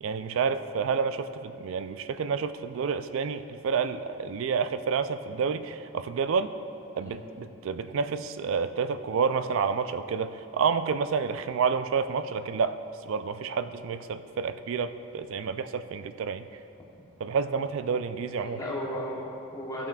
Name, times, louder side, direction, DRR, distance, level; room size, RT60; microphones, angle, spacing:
voice 1, 0.0-6.5 7.0-12.8 13.1-16.4 17.2-18.6, right 5 dB, 60° right, 10 dB, 0.3 m, -29 dB
voice 2, 18.3-19.9, equal, 15° left, -5 dB, 0.9 m, -36 dB
15.0 x 5.8 x 2.3 m, 2.7 s
head